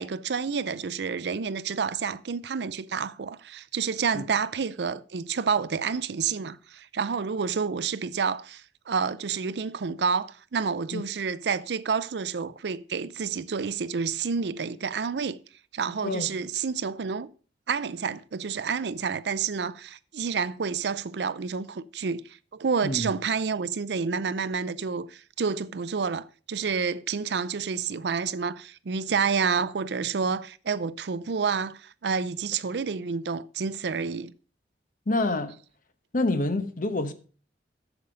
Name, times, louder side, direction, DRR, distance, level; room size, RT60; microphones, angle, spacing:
voice 1, 0.0-15.4 15.7-17.3 17.7-34.3, right 5 dB, 65° right, 0.5 m, -29 dB
voice 2, 35.1-35.5 36.1-37.1, left 2 dB, 50° left, 1.0 m, -27 dB
8.1 x 7.0 x 5.1 m
head